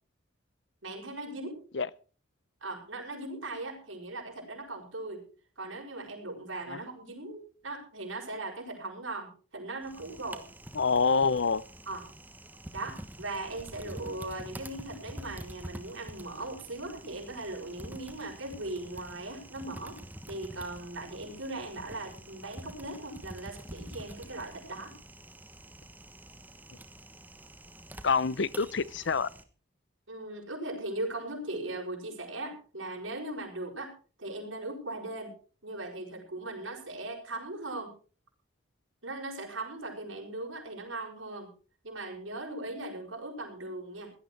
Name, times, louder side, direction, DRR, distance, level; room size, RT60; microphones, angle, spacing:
voice 1, 0.8-1.6 2.6-5.2 5.6-10.4 11.9-12.0 12.7-20.0 20.3-24.9 30.1-33.9 34.2-35.3 35.6-37.9 39.0-41.5 41.8-44.1, right 2 dB, 80° right, 5.7 m, -39 dB
Typing, 9.8-29.4, right 1 dB, 10° right, 1.2 m, -47 dB
voice 2, 10.7-11.6 28.0-29.3, left 5 dB, 65° left, 0.6 m, -26 dB
17.0 x 12.0 x 4.6 m
head